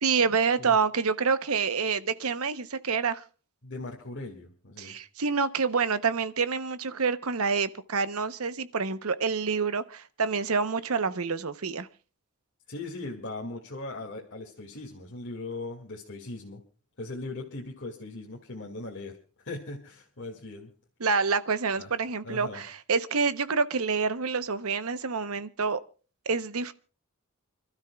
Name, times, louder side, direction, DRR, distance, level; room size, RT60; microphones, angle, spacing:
voice 1, 0.0-3.2 4.8-11.9 21.0-25.8 26.3-26.7, right 5 dB, 75° right, 0.9 m, -27 dB
voice 2, 3.6-5.0 12.7-16.6 17.0-20.7 21.8-21.9 22.2-22.6, left 2 dB, 55° left, 2.2 m, -39 dB
29.0 x 12.5 x 2.3 m
head